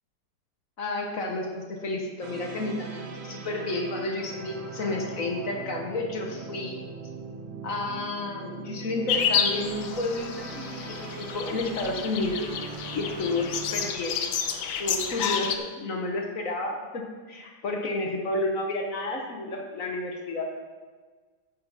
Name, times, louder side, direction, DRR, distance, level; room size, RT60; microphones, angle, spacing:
voice 1, 0.8-6.8 7.6-12.5 12.9-14.2 14.8-20.4, left 2 dB, 50° left, 1 dB, 1.3 m, -31 dB
sound 1, 2.2-13.9, right 4 dB, 55° right, 0.7 m, -40 dB
sound 2, 9.1-15.6, left 7 dB, 90° left, 1.5 m, -30 dB
10.0 x 7.4 x 4.1 m, 1.4 s
omnidirectional pair, 2.1 m